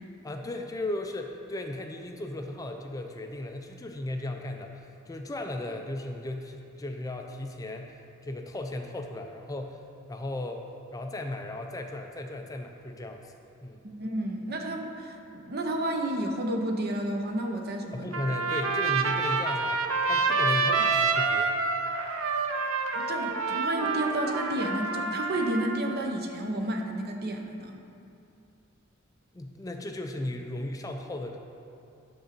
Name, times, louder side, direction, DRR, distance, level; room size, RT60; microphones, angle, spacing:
voice 1, 0.2-9.8 10.1-10.6 10.9-13.3 13.6-13.8 17.9-19.8 20.1-21.5 29.3-31.4, left 1 dB, 15° left, 4 dB, 0.4 m, -36 dB
voice 2, 13.8-18.1 22.9-27.8, right 1 dB, 50° right, 3 dB, 0.8 m, -31 dB
Trumpet, 18.1-25.8, right 4 dB, 85° right, 0.6 m, -27 dB
10.0 x 3.8 x 6.7 m, 2.6 s
head